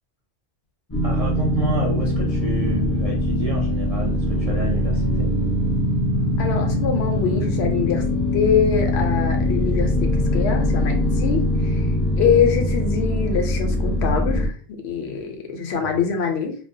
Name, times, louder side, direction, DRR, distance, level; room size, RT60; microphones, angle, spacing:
sound 1, 0.9-14.5, left 1 dB, 25° left, 0.5 m, -22 dB
voice 1, 1.0-5.3 15.8-15.9, right 1 dB, 60° right, -3 dB, 0.4 m, -29 dB
voice 2, 6.4-11.9 12.2-16.6, left 6 dB, 75° left, 4 dB, 0.8 m, -24 dB
2.3 x 2.1 x 2.6 m, 0.42 s
omnidirectional pair, 1.1 m